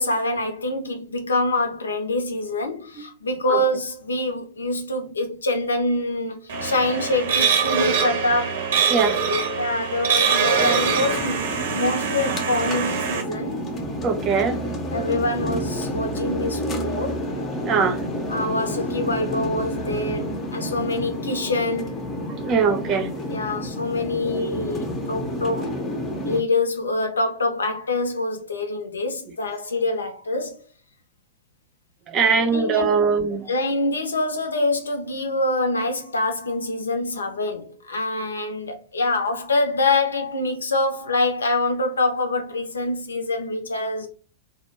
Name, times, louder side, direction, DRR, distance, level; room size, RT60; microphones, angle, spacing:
voice 1, 0.0-8.7 9.6-13.7 14.9-17.2 18.3-22.1 23.3-25.7 26.3-30.6 32.4-33.0 33.5-44.1, left 2 dB, 75° left, 0.5 m, -25 dB
sound 1, 6.5-13.2, right 6 dB, 65° right, 0.8 m, -23 dB
voice 2, 8.9-9.2 14.0-14.6 17.7-18.0 22.4-23.1 32.1-33.5, right 5 dB, 30° right, 0.5 m, -21 dB
sound 2, 10.5-26.4, equal, 20° left, 0.5 m, -30 dB
2.2 x 2.0 x 3.1 m
figure-of-eight pair, 95°, 0 cm